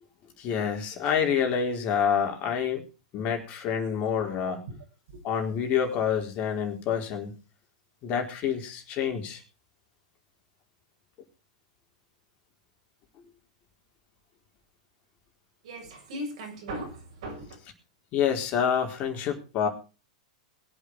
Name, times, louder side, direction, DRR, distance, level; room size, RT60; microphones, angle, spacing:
voice 1, 0.4-2.8 3.1-4.6 5.2-7.4 8.0-9.4 18.1-19.7, left 7 dB, 40° left, 4.6 m, -27 dB
voice 2, 4.2-4.8 15.6-17.6, right 1 dB, 65° right, 7.2 m, -38 dB
22.0 x 8.5 x 4.7 m
hypercardioid pair, 105°, 4 cm